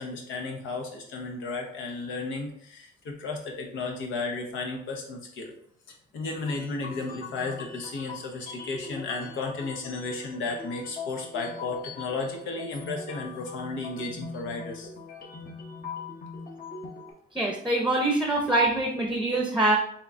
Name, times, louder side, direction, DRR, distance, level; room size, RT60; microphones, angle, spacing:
voice 1, 0.0-5.5 5.9-14.9, left 3 dB, 85° left, 1 dB, 0.9 m, -34 dB
sound 1, 6.2-17.1, left 5 dB, 45° left, 0.9 m, -42 dB
voice 2, 17.3-19.8, right 2 dB, 5° right, 0 dB, 0.7 m, -24 dB
3.7 x 2.9 x 3.5 m, 0.67 s
cardioid pair, 90°, 20 cm